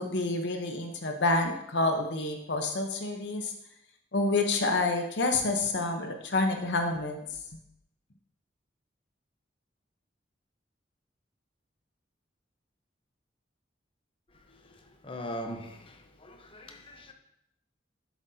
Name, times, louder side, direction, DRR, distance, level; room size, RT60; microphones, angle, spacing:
voice 1, 0.0-3.5 4.1-7.2, left 2 dB, 70° left, 0.9 m, -28 dB
voice 2, 14.6-17.1, equal, 30° left, 0.9 m, -41 dB
11.5 x 7.4 x 2.8 m
head